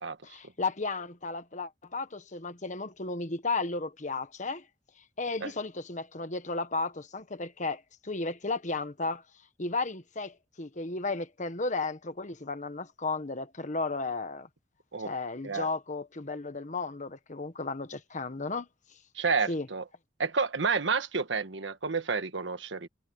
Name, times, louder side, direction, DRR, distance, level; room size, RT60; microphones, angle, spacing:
voice 1, 0.2-4.6 5.2-9.2 9.6-14.5 15.0-18.7 19.5-19.7, left 3 dB, 40° left, 1.5 m, -34 dB
voice 2, 19.2-19.8 20.2-22.9, right 4 dB, 85° right, 1.5 m, -30 dB
head